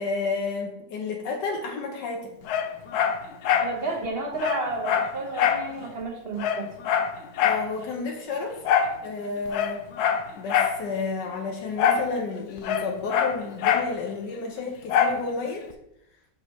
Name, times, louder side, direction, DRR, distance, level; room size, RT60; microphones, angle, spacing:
voice 1, 0.0-2.4 7.4-8.6 8.9-9.8 10.4-15.7, left 4 dB, 90° left, 1 dB, 1.5 m, -31 dB
Dog, 2.5-3.7 4.1-4.2 4.4-5.7 6.0-6.1 6.4-7.7 8.6-9.0 9.5-10.8 11.8-12.1 12.4-13.9 14.9-15.2 15.7-15.8, left 8 dB, 75° left, 1.1 m, -24 dB
voice 2, 3.6-6.7, right 3 dB, 60° right, 2 dB, 0.6 m, -31 dB
6.0 x 5.2 x 3.0 m, 0.81 s
omnidirectional pair, 1.8 m